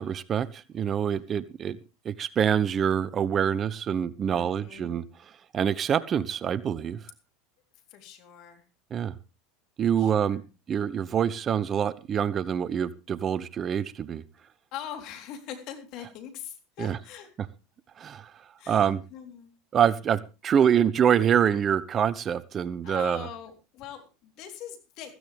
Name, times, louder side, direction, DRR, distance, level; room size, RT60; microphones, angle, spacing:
voice 1, 0.0-1.8 2.0-5.0 5.5-7.0 8.9-9.2 9.8-10.4 10.7-14.2 16.8-17.0 18.0-18.3 18.7-19.0 19.7-23.3, right 8 dB, 35° right, 18 dB, 0.8 m, -25 dB
voice 2, 4.3-4.9 7.9-8.6 9.9-10.5 14.7-17.3 18.6-19.5 22.8-25.1, left 9 dB, 55° left, 6 dB, 3.7 m, -42 dB
15.5 x 14.5 x 3.5 m, 0.30 s
hypercardioid pair, 85°, 0 cm